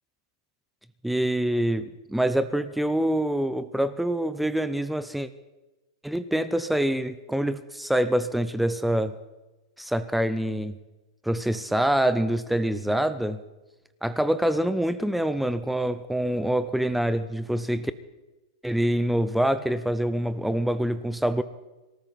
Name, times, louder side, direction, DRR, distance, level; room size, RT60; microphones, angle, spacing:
voice 1, 1.0-5.3 6.0-9.2 9.8-10.8 11.2-13.4 14.0-17.9 18.6-21.4, right 1 dB, ahead, 13 dB, 0.4 m, -25 dB
24.5 x 13.5 x 4.1 m, 1.1 s
supercardioid pair, 160°, 3 cm